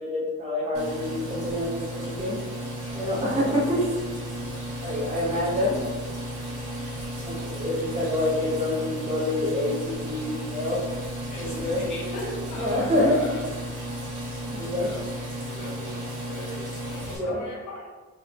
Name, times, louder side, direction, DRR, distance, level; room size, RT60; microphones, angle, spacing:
voice 1, 0.0-2.4 2.9-3.8 4.8-5.8 7.2-10.8 11.4-11.8 12.6-13.2 14.4-14.9 17.1-17.4, left 1 dB, 20° right, -6 dB, 0.9 m, -27 dB
sound 1, 0.7-17.2, equal, 90° right, 1.2 m, -34 dB
voice 2, 11.3-13.4 14.4-15.2 15.5-17.9, left 1 dB, 70° left, -3 dB, 1.0 m, -39 dB
3.7 x 3.5 x 2.5 m, 1.3 s
wide cardioid pair, 155°, 30 cm